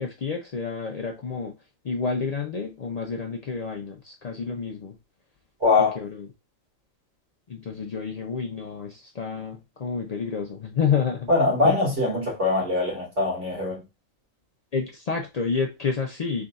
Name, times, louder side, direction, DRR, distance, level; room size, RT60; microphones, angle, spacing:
voice 1, 0.0-1.6 1.8-4.9 6.0-6.3 7.5-11.3 11.6-11.8 14.7-16.4, left 5 dB, 85° left, 0.3 m, -29 dB
voice 2, 5.6-6.0 11.3-13.8, left 3 dB, 60° right, 2.3 m, -22 dB
3.9 x 3.5 x 2.3 m
omnidirectional pair, 1.4 m